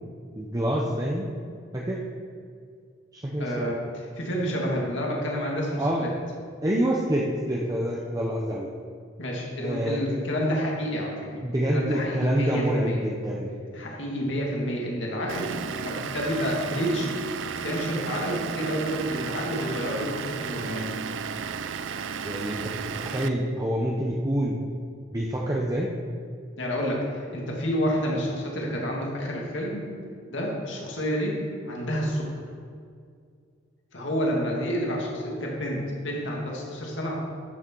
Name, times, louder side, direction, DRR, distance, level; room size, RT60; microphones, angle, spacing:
voice 1, 0.4-1.3 1.7-2.0 3.1-3.7 5.8-6.0 6.6-8.7 9.6-10.0 11.4-13.5 22.2-24.6 25.1-25.9, right 1 dB, 20° right, -2 dB, 0.8 m, -27 dB
voice 2, 3.4-6.1 9.2-11.2 11.7-13.0 13.7-17.1 17.6-20.9 26.6-29.9 30.3-32.4 33.9-37.1, equal, 70° left, -2 dB, 2.3 m, -29 dB
Vehicle / Engine, 15.3-23.3, right 6 dB, 75° right, 0.5 m, -34 dB
13.5 x 6.5 x 4.6 m, 2.2 s
head